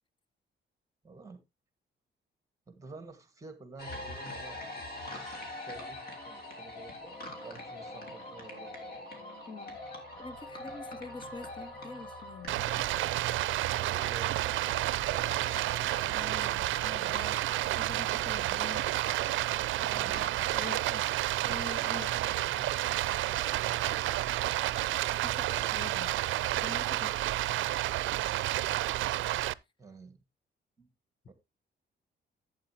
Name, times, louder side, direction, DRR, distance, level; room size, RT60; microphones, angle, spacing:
voice 1, 1.0-1.4 2.7-6.0 6.2-7.0 7.4-9.0 13.8-15.6 19.9-20.2 22.1-22.8 23.3-24.7 25.2-25.8 29.8-30.2 30.8-30.9 31.3-31.4, right 3 dB, 15° right, 1.6 m, -49 dB
sound 1, 3.8-20.9, left 1 dB, 50° left, 3.2 m, -45 dB
voice 2, 9.5-9.8 10.2-12.6 16.1-17.4 17.8-18.9 19.8-20.3 20.5-21.1 21.5-22.4 25.2-26.2 26.5-27.2, left 4 dB, 25° left, 0.7 m, -45 dB
Stream, 12.5-29.5, right 15 dB, 85° right, 0.4 m, -30 dB
11.5 x 8.5 x 2.8 m
cardioid pair, 160°, 20 cm